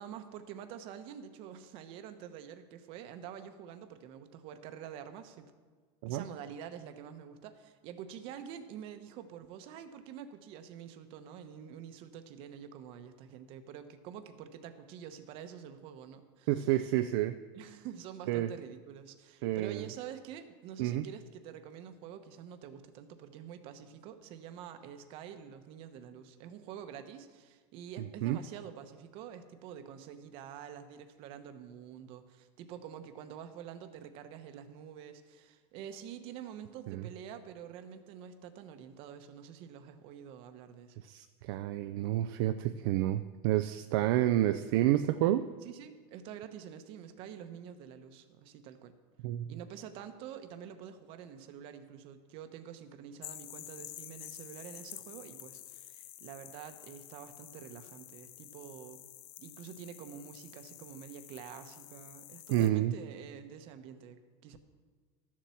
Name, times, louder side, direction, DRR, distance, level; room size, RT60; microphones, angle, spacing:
voice 1, 0.0-5.5 6.1-16.5 17.5-41.0 45.6-49.0 49.5-59.1 59.4-64.6, right 9 dB, 40° right, 9 dB, 0.9 m, -47 dB
voice 2, 16.5-17.4 18.3-18.5 19.4-19.8 20.8-21.1 28.2-28.4 36.9-37.0 41.0-45.4 49.2-49.5 62.5-63.0, right 13 dB, 55° right, 10 dB, 0.5 m, -29 dB
sound 1, 53.2-62.7, left 15 dB, 50° left, 0.6 m, -50 dB
13.0 x 7.5 x 7.0 m, 1.5 s
supercardioid pair, 170°, 14 cm